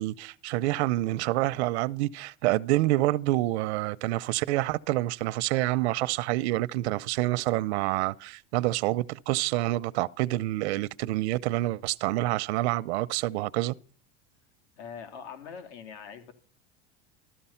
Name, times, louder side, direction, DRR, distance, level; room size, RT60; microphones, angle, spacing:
voice 1, 0.0-13.7, right 17 dB, 90° right, 0.7 m, -27 dB
voice 2, 14.8-16.3, left 7 dB, 85° left, 3.3 m, -42 dB
14.0 x 13.5 x 5.7 m
cardioid pair, 170°, 32 cm